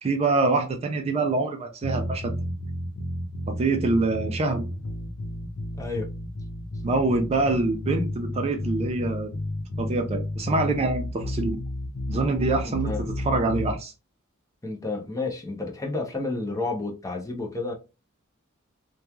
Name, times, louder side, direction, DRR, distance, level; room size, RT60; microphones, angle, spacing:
voice 1, 0.0-2.3 3.5-4.6 6.8-9.4 9.8-11.6 12.1-13.9, right 3 dB, 30° right, 0.3 m, -25 dB
sound 1, 1.8-13.8, left 1 dB, 70° left, 0.6 m, -32 dB
voice 2, 5.8-6.1 12.8-13.1 14.6-17.7, left 3 dB, 15° left, 0.6 m, -31 dB
3.0 x 2.2 x 2.3 m
head